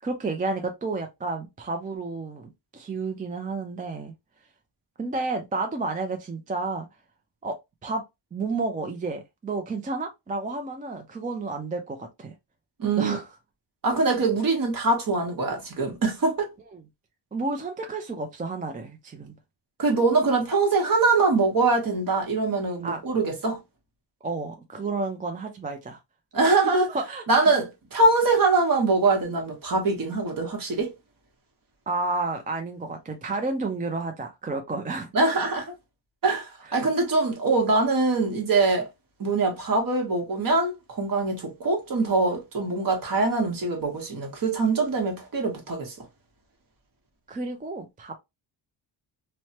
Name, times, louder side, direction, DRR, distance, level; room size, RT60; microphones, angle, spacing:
voice 1, 0.0-4.1 5.0-6.9 7.4-7.5 7.8-8.0 8.3-12.3 13.0-13.3 16.7-16.8 17.3-19.3 22.8-23.0 24.2-26.0 26.5-27.2 31.9-35.1 47.3-48.2, right 3 dB, 20° right, 0.3 m, -31 dB
voice 2, 12.8-13.2 13.8-16.5 19.8-23.6 26.3-26.9 27.3-30.9 35.1-35.7 36.2-38.9 39.2-46.1, right 3 dB, 45° right, 1.1 m, -23 dB
3.1 x 2.1 x 2.8 m
wide cardioid pair, 130°, 46 cm